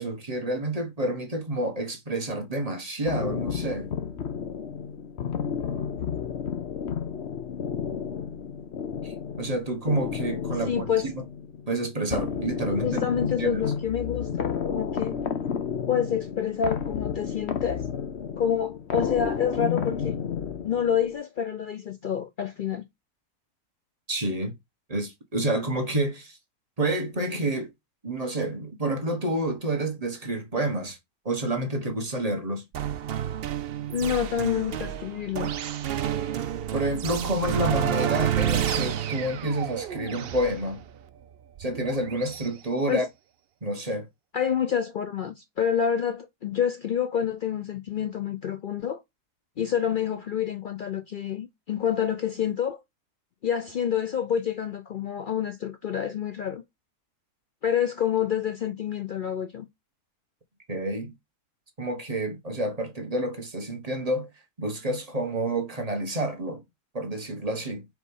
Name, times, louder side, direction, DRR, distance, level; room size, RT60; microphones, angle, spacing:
voice 1, 0.0-3.9 9.0-11.2 11.7-13.0 13.4-13.6 24.1-24.5 24.9-26.4 26.8-27.7 28.0-31.0 31.2-32.6 36.7-40.8 41.6-43.0 43.6-44.1 60.7-61.1 61.8-64.3 64.6-66.6 66.9-67.9, right 1 dB, 25° right, 1.2 m, -29 dB
sound 1, 3.1-21.2, left 7 dB, 50° left, 1.1 m, -32 dB
voice 2, 10.7-11.1 12.8-15.1 15.9-17.8 18.4-20.2 20.6-22.8 33.9-35.5 42.9-43.0 44.3-49.0 49.6-52.8 53.4-56.6 57.6-59.7, left 8 dB, 85° left, 0.4 m, -28 dB
sound 2, 32.7-42.5, right 9 dB, 60° right, 0.6 m, -30 dB
4.7 x 4.1 x 5.4 m
omnidirectional pair, 1.6 m